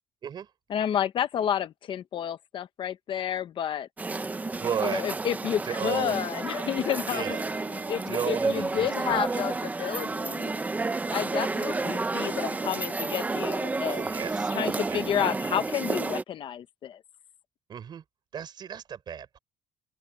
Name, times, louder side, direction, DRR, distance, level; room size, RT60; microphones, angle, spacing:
voice 1, 0.7-3.9 4.8-7.2 7.7-10.5 11.1-14.0 14.5-17.0, left 9 dB, 45° left, 1.0 m, -30 dB
sound 1, 4.0-16.2, right 3 dB, 15° right, 0.8 m, -31 dB
voice 2, 4.6-5.0 5.6-6.2 7.1-7.5 8.1-9.3 13.9-15.0 17.7-18.0 18.3-19.4, right 8 dB, 40° right, 4.2 m, -34 dB
open air
cardioid pair, 150°, 12 cm